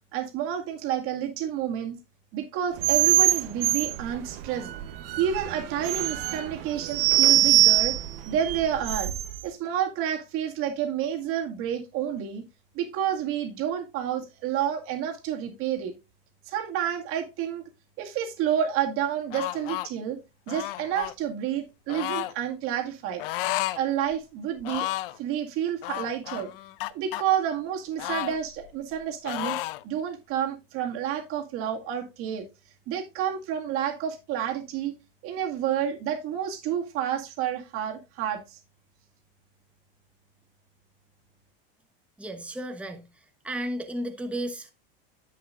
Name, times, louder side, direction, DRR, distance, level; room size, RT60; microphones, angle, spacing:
voice 1, 0.1-1.9 2.3-4.7 5.2-8.0 8.3-9.1 9.4-12.4 12.7-15.9 16.5-17.6 18.0-20.2 20.5-26.5 26.9-32.5 32.9-35.0 35.2-38.6, right 9 dB, 50° right, 2.1 m, -29 dB
sound 1, 2.8-9.4, right 14 dB, 75° right, 1.0 m, -24 dB
sound 2, 19.3-19.9 20.5-21.1 21.9-22.3 23.2-23.8 24.1-24.2 24.6-25.2 25.8-27.2 28.0-29.0 29.2-29.8, left 17 dB, 70° left, 0.6 m, -32 dB
voice 2, 42.2-43.0 43.4-44.7, right 1 dB, 5° right, 1.0 m, -33 dB
10.0 x 7.8 x 2.5 m
supercardioid pair, 130°, 29 cm